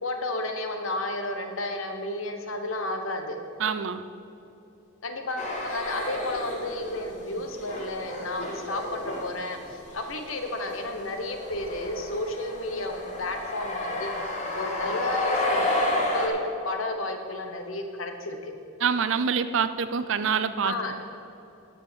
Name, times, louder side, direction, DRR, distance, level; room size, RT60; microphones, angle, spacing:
voice 1, 0.0-3.4 5.0-14.1 14.5-15.8 16.1-18.5 20.6-20.9, left 2 dB, 75° left, 5 dB, 1.1 m, -32 dB
voice 2, 3.6-4.0 18.8-20.7, right 6 dB, 65° right, 12 dB, 0.5 m, -26 dB
sound 1, 5.4-7.0 7.3-16.3, left 2 dB, 35° left, 1.6 m, -31 dB
9.7 x 6.3 x 7.0 m, 2.9 s
head